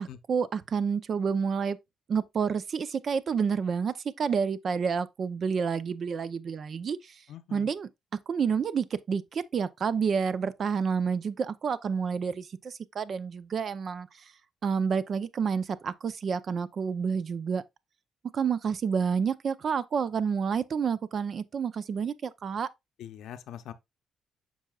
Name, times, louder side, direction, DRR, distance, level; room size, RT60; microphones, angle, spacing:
voice 1, 0.0-1.8 2.1-7.2 7.5-7.9 8.3-14.1 14.6-17.6 18.3-22.7, right 6 dB, 50° right, 0.5 m, -29 dB
voice 2, 7.3-7.7 23.0-23.7, left 10 dB, 80° left, 0.6 m, -43 dB
7.4 x 5.5 x 2.3 m
cardioid pair, 90°, 0 cm